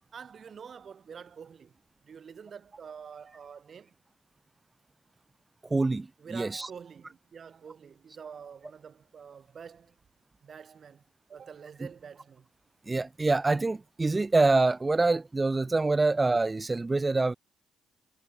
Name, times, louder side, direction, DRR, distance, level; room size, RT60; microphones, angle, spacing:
voice 1, 0.1-3.9 6.2-9.9 10.4-11.0 11.3-12.5, right 7 dB, 50° right, 4.4 m, -47 dB
voice 2, 5.6-6.7 12.9-17.3, right 3 dB, 20° right, 0.8 m, -25 dB
cardioid pair, 90°, 0 cm